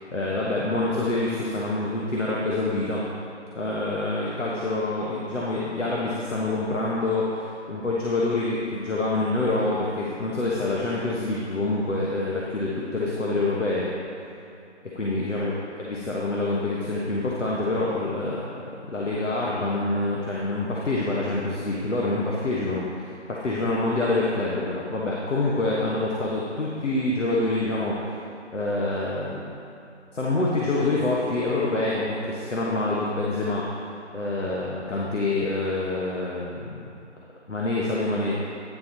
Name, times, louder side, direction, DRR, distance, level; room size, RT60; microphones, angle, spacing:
voice 1, 0.0-3.0 3.5-13.9 15.0-28.2 28.5-29.4 30.1-33.6 34.1-36.9 37.5-38.4, left 2 dB, 85° left, -5 dB, 1.3 m, -26 dB
9.5 x 4.0 x 6.1 m, 2.8 s
figure-of-eight pair, 170°, 36 cm